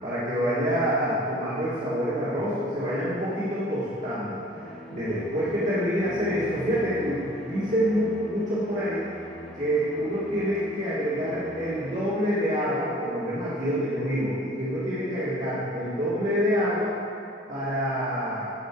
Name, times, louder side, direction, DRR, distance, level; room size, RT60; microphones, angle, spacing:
voice 1, 0.0-9.0 9.5-16.9 17.5-18.5, equal, 45° right, -11 dB, 2.2 m, -27 dB
Bowed string instrument, 4.2-12.8, left 1 dB, 5° left, 1.0 m, -42 dB
13.5 x 5.3 x 5.1 m, 2.6 s
head